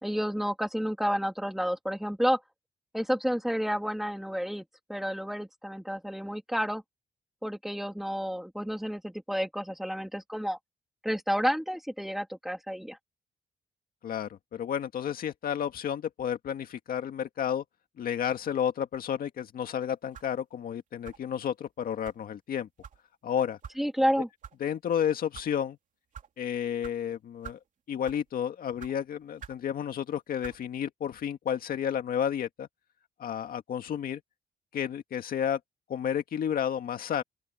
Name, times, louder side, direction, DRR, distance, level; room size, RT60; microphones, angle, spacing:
voice 1, 0.0-2.4 2.9-4.6 4.9-6.8 7.4-10.6 11.0-13.0 23.8-24.3, equal, ahead, 2.4 m, -30 dB
voice 2, 14.0-17.6 18.0-22.7 23.2-23.6 24.6-25.8 26.4-27.6 27.9-32.7 33.2-34.2 34.7-35.6 35.9-37.2, left 9 dB, 60° left, 1.9 m, -31 dB
sound 1, 20.1-20.4 21.0-21.3 22.0-22.2 22.8-23.0 23.6-23.8 24.4-24.6 25.2-25.5 26.1-26.3 26.8-27.0 27.4-27.7 28.0-28.3 28.8-28.9 29.4-29.6 30.4-30.6, right 7 dB, 50° right, 2.8 m, -45 dB
open air
cardioid pair, 145°, 17 cm